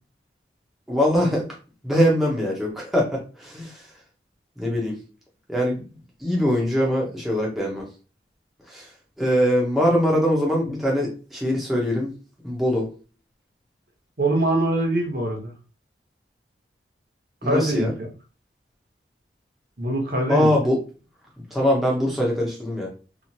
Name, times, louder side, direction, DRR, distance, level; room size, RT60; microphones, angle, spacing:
voice 1, 0.9-1.5 1.8-3.7 4.6-5.0 5.5-5.8 6.2-7.9 8.7-8.9 9.2-12.1 12.4-12.9 17.4-17.9 20.3-20.8 21.5-22.9, equal, ahead, -3 dB, 0.6 m, -22 dB
voice 2, 14.2-15.5 17.4-17.9 19.8-20.5, right 1 dB, 55° right, 1 dB, 0.8 m, -23 dB
2.9 x 2.4 x 2.6 m, 0.35 s
head